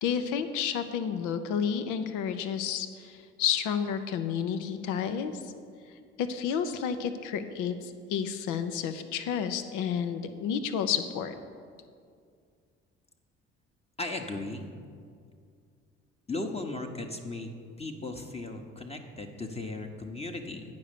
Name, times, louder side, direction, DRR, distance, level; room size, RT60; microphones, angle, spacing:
voice 1, 0.0-5.5 6.2-11.4, left 7 dB, 65° left, 9 dB, 0.8 m, -31 dB
voice 2, 14.0-14.7 16.3-17.5 17.8-20.6, left 2 dB, 20° left, 2 dB, 1.1 m, -36 dB
9.6 x 5.2 x 6.7 m, 2.2 s
hypercardioid pair, 50°, 33 cm